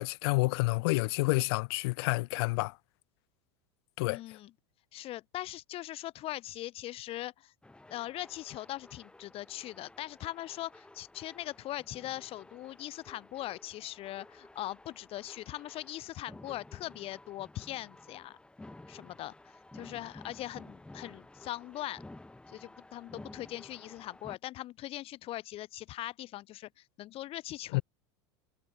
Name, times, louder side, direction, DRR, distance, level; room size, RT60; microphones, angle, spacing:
voice 1, 0.0-2.7 4.0-4.2 27.7-27.8, left 25 dB, 60° left, 0.4 m, -29 dB
voice 2, 4.0-4.5 4.9-7.5 7.9-18.4 18.9-19.3 19.7-22.0 22.5-27.8, left 15 dB, 40° left, 1.0 m, -41 dB
sound 1, 7.6-24.4, left 2 dB, 5° left, 1.6 m, -53 dB
hypercardioid pair, 95°, 15 cm